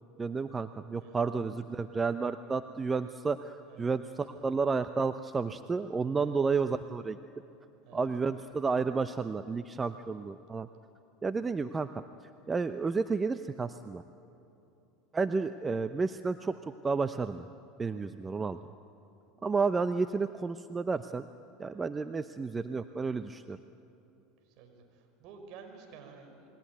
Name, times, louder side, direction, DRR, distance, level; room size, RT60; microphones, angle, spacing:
voice 1, 0.2-7.2 7.9-10.7 11.2-12.0 12.5-14.0 15.1-17.5 17.8-18.6 19.4-21.3 21.6-23.6, right 4 dB, 20° right, 10 dB, 0.8 m, -31 dB
voice 2, 1.0-1.4 3.7-3.9 4.3-4.5 6.2-6.3 7.8-8.0 24.6-26.5, right 5 dB, 55° right, 4 dB, 5.5 m, -52 dB
28.5 x 21.0 x 9.4 m, 2.9 s
hypercardioid pair, 80°, 0 cm